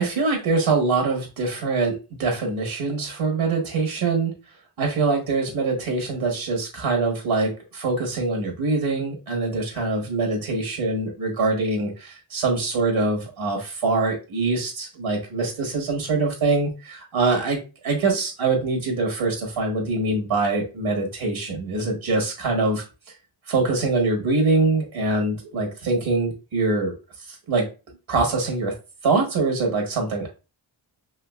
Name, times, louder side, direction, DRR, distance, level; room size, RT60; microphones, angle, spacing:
voice 1, 0.0-4.3 4.8-17.6 17.8-22.8 23.5-26.9 27.5-27.7 28.1-28.7 29.0-30.3, right 3 dB, 75° right, 1 dB, 1.3 m, -24 dB
3.8 x 2.7 x 2.3 m, 0.30 s
cardioid pair, 75°, 49 cm